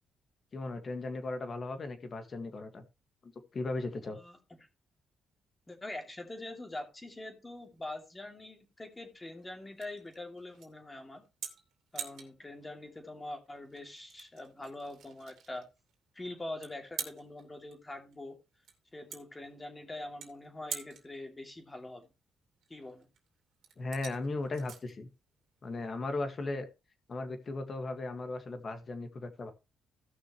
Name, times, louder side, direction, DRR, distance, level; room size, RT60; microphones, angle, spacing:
voice 1, 0.5-2.8 3.2-4.2 23.8-25.1 25.6-26.7 27.1-29.5, left 2 dB, 40° left, 1.9 m, -37 dB
voice 2, 4.0-4.4 5.7-11.2 11.9-15.7 16.1-18.4 18.9-22.1 22.7-23.1, left 2 dB, 20° left, 2.7 m, -44 dB
sound 1, 7.5-26.3, right 7 dB, 70° right, 2.5 m, -48 dB
16.5 x 6.1 x 3.1 m
cardioid pair, 90°, 0 cm